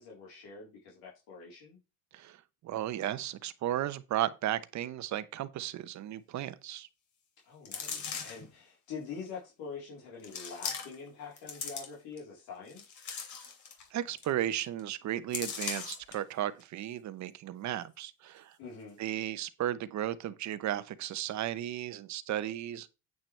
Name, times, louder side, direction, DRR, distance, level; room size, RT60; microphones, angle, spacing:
voice 1, 0.0-1.8 7.4-13.0 18.6-19.0, left 5 dB, 90° left, 3.9 m, -45 dB
voice 2, 2.6-6.9 13.9-18.6 19.0-22.9, right 12 dB, 50° right, 1.0 m, -35 dB
sound 1, 7.6-8.5 9.3-9.4 10.2-11.1 11.4-12.2 12.7-13.9 14.2-14.3 14.6-14.8 15.3-16.1 16.6-16.7, left 6 dB, 55° left, 3.0 m, -39 dB
9.2 x 8.6 x 3.3 m
cardioid pair, 130°, 36 cm